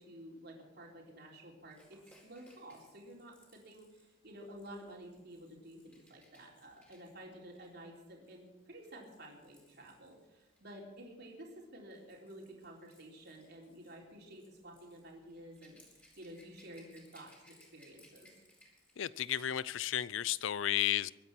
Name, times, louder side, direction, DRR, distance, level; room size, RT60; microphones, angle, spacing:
voice 1, 0.0-1.8 2.2-18.3, right 1 dB, 55° right, -1 dB, 3.8 m, -52 dB
Rattle / Rattle (instrument), 1.7-10.7 11.6-19.7 20.0-20.2, left 1 dB, 10° left, 4.4 m, -66 dB
voice 2, 19.0-21.1, left 11 dB, 70° left, 20 dB, 0.4 m, -33 dB
23.0 x 9.5 x 6.1 m, 1.1 s
head